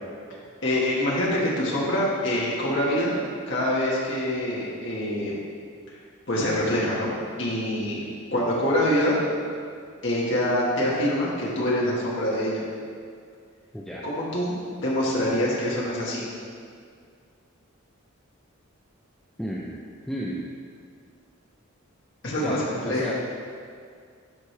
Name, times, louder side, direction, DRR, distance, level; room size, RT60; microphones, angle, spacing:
voice 1, 0.6-3.2 3.5-5.4 6.3-8.0 8.3-9.2 10.0-12.6 14.0-14.5 14.8-16.3 22.2-23.1, left 1 dB, 55° left, -6 dB, 1.6 m, -25 dB
voice 2, 13.7-14.1 19.4-20.5 22.4-23.1, equal, ahead, -5 dB, 0.5 m, -33 dB
12.0 x 4.8 x 3.4 m, 2.2 s
head